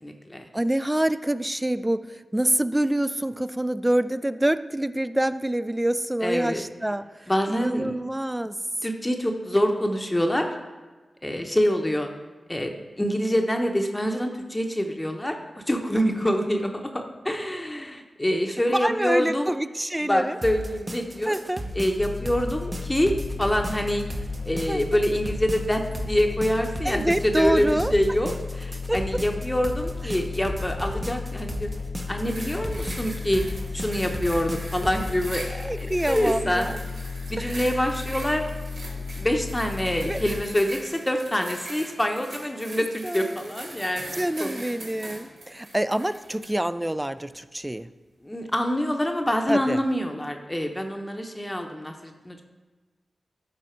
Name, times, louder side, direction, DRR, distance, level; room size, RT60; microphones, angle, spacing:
voice 1, 0.0-0.4 6.2-6.6 7.3-8.0 8.8-10.5 11.2-12.1 12.5-12.7 13.0-19.5 20.0-21.3 21.7-24.0 24.4-31.7 32.1-33.4 33.7-36.7 37.3-38.5 39.2-44.6 48.2-52.4, equal, 15° left, 4 dB, 0.8 m, -26 dB
voice 2, 0.5-8.6 18.7-20.4 21.3-21.6 24.7-24.8 26.8-27.9 28.9-29.0 30.0-30.2 35.6-36.8 37.4-37.7 40.0-40.2 43.0-43.5 44.2-47.9 49.5-49.8, right 1 dB, 15° right, 13 dB, 0.3 m, -26 dB
sound 1, 20.4-35.1, equal, 30° right, 0.9 m, -35 dB
sound 2, 22.0-40.5, left 4 dB, 70° left, 0.4 m, -34 dB
sound 3, 32.2-46.6 47.2-47.4, right 1 dB, 80° right, 2.0 m, -41 dB
11.0 x 3.9 x 4.5 m, 1.3 s
cardioid pair, 45°, 0 cm